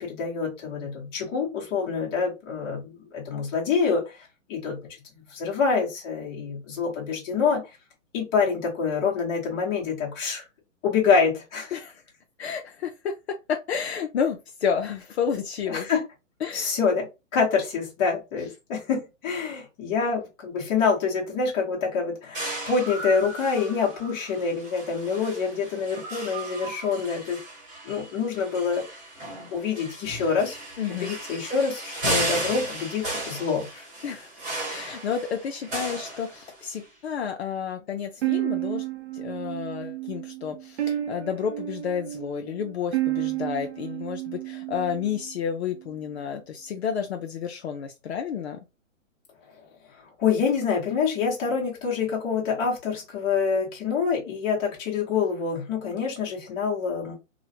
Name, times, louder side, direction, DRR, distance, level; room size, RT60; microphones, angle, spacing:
voice 1, 0.0-4.8 5.3-7.8 8.1-10.4 10.8-11.7 15.7-16.0 16.5-17.1 17.3-27.4 27.8-28.8 29.5-30.6 30.9-33.9 50.2-57.1, left 5 dB, 20° left, 0.9 m, -26 dB
voice 2, 12.4-13.1 13.5-15.9 16.4-16.7 30.8-31.1 34.0-34.3 34.7-38.8 39.1-48.6, left 7 dB, 55° left, 0.5 m, -30 dB
sound 1, 22.3-36.8, right 1 dB, 20° right, 1.2 m, -35 dB
sound 2, 38.2-45.3, right 15 dB, 60° right, 0.6 m, -31 dB
3.0 x 2.1 x 2.7 m
hypercardioid pair, 155°, 39 cm